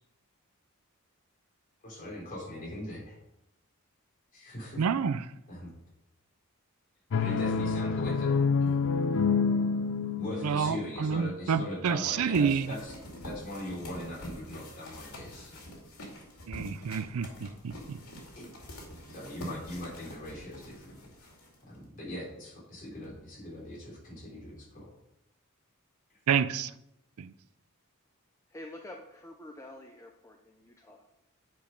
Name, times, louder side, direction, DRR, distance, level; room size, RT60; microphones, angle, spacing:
voice 1, 1.8-3.2 4.3-4.8 5.5-5.7 7.2-8.8 10.2-12.9 13.2-15.6 18.4-18.5 19.1-20.9 21.7-24.9, left 1 dB, 40° left, -4 dB, 3.5 m, -40 dB
voice 2, 4.8-5.2 10.4-12.7 16.5-18.0 26.3-26.7 27.2-27.3, right 6 dB, 85° right, 14 dB, 0.5 m, -29 dB
sound 1, 7.1-10.8, left 5 dB, 60° left, 0.4 m, -27 dB
sound 2, 12.3-21.9, equal, 90° left, 2.6 m, -46 dB
voice 3, 28.5-31.1, left 1 dB, 15° left, 3 dB, 0.6 m, -47 dB
9.4 x 5.1 x 5.2 m, 0.86 s
head